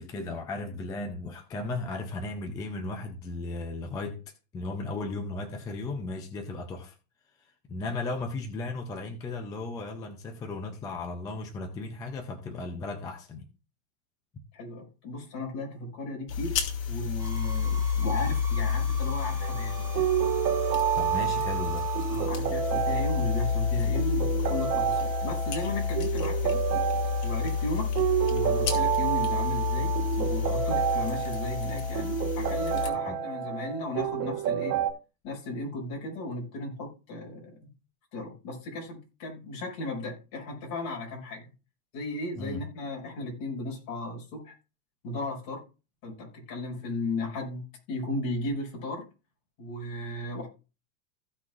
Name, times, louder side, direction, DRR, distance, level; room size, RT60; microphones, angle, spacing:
voice 1, 0.0-4.2 4.5-7.0 7.7-13.5 20.9-21.9 33.1-33.2 42.4-42.6, left 2 dB, 10° left, 0.3 m, -35 dB
voice 2, 14.5-16.5 16.9-20.1 22.1-26.6 27.2-27.9 28.3-34.8 35.2-37.6 38.1-41.5 41.9-44.5 45.0-45.6 46.0-49.0 49.6-50.5, left 1 dB, 45° left, 5.7 m, -36 dB
sound 1, 16.3-32.9, left 7 dB, 70° left, 2.7 m, -30 dB
sound 2, 17.2-22.3, right 4 dB, 5° right, 0.9 m, -45 dB
sound 3, 19.4-34.9, right 10 dB, 65° right, 1.7 m, -29 dB
15.5 x 5.9 x 2.4 m
supercardioid pair, 140°, 49 cm